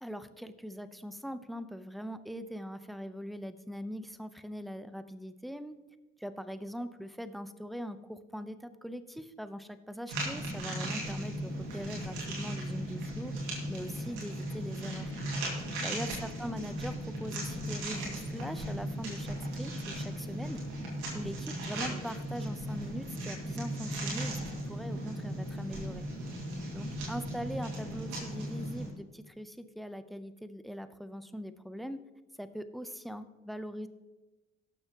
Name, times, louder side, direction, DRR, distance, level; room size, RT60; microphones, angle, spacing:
voice 1, 0.0-5.8 6.2-13.3 13.7-15.1 15.8-20.6 21.1-26.1 26.7-32.0 32.4-33.9, equal, ahead, 12 dB, 0.8 m, -41 dB
sound 1, 10.1-28.9, right 1 dB, 90° right, 2.3 m, -37 dB
18.0 x 7.0 x 3.0 m, 1.2 s
hypercardioid pair, 40°, 33 cm